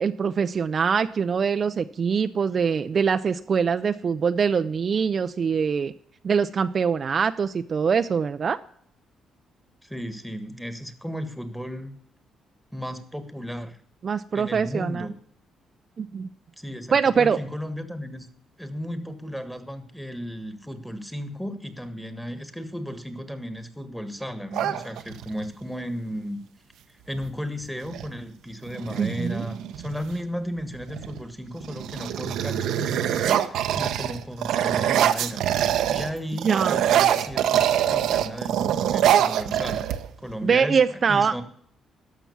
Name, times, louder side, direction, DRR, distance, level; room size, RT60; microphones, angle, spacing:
voice 1, 0.0-5.9 6.2-8.6 14.0-15.1 16.0-16.3 16.9-17.4 29.0-29.4 36.4-36.9 40.4-41.3, right 6 dB, 45° right, 10 dB, 0.5 m, -23 dB
voice 2, 9.8-11.9 12.7-13.8 14.3-15.1 16.6-18.3 18.6-26.4 27.1-39.9 40.2-40.8 41.1-41.4, equal, ahead, 9 dB, 1.6 m, -34 dB
sound 1, 24.5-25.5 27.2-27.3 27.6-28.1 28.7-30.2 30.8-31.2 31.6-36.1 36.4-40.3, right 10 dB, 80° right, 0.8 m, -24 dB
13.0 x 6.0 x 7.0 m, 0.63 s
cardioid pair, 90°, 0 cm